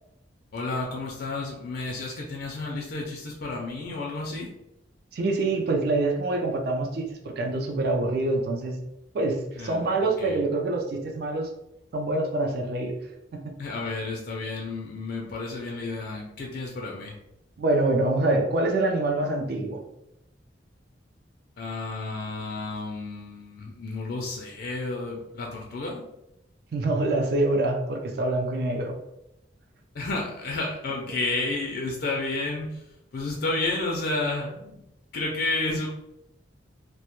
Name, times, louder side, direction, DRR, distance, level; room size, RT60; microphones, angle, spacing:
voice 1, 0.5-4.5 9.6-9.8 10.2-10.4 13.6-17.1 21.6-26.0 29.9-34.8 35.1-35.9, left 2 dB, 55° left, -1 dB, 0.4 m, -31 dB
voice 2, 5.1-8.8 9.1-11.5 11.9-12.9 13.3-13.5 17.6-19.8 26.7-29.0, right 2 dB, 55° right, 2 dB, 0.4 m, -25 dB
2.1 x 2.1 x 2.9 m, 0.86 s
head